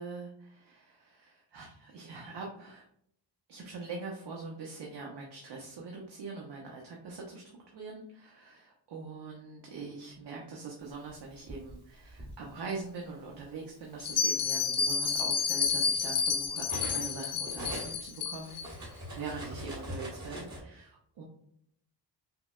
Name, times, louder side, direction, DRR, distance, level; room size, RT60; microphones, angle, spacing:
voice 1, 0.0-2.9 3.5-21.2, right 4 dB, 65° right, -1 dB, 0.8 m, -43 dB
Cutlery silverware, 11.1-12.4 13.3-13.5 13.9-17.2 17.4-20.6, equal, 40° right, 1.5 m, -43 dB
Bell, 14.0-18.6, left 6 dB, 40° left, 0.4 m, -30 dB
5.6 x 2.1 x 2.4 m, 0.69 s
wide cardioid pair, 120°, 43 cm